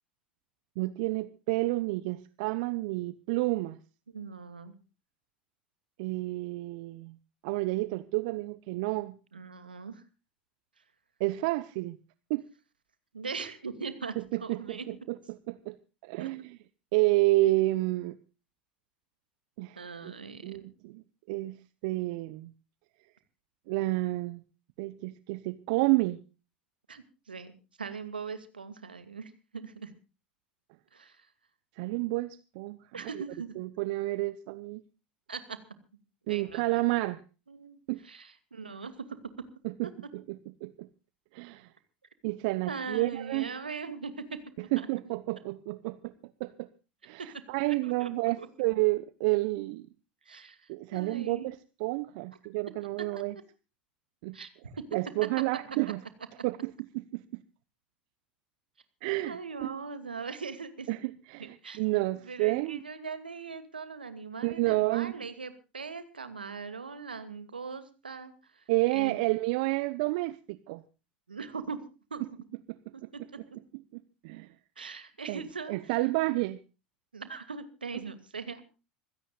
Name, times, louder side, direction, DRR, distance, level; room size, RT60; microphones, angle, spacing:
voice 1, 0.8-3.8 6.0-7.2 7.4-9.2 11.2-12.0 12.3-12.4 14.2-16.6 16.9-18.2 19.6-19.8 20.4-21.0 21.3-22.5 23.7-24.4 24.8-26.2 31.8-32.8 33.6-34.8 36.3-37.2 37.9-38.0 39.6-40.9 41.3-41.7 42.2-43.5 44.7-46.1 46.4-46.7 47.0-49.9 50.7-53.3 54.2-54.4 54.9-56.0 56.4-57.2 59.0-59.7 60.9-62.8 64.4-65.1 68.7-70.8 73.9-74.5 75.3-75.4 75.7-76.6, right 20 dB, 60° right, 0.9 m, -30 dB
voice 2, 4.1-4.7 9.3-10.0 13.1-14.9 16.2-16.3 19.7-20.6 26.9-27.5 27.8-29.9 30.9-31.3 32.9-33.6 35.3-35.6 36.3-36.8 37.5-39.5 42.7-44.4 44.8-45.1 47.2-47.4 47.7-48.1 48.4-48.5 50.3-51.5 54.3-54.5 59.2-61.0 61.4-61.8 62.2-68.6 68.9-69.2 71.3-72.2 72.9-73.2 74.8-75.8 76.3-76.4 77.1-78.6, right 5 dB, 90° right, 2.4 m, -40 dB
26.0 x 16.5 x 2.4 m
hypercardioid pair, 80°, 5 cm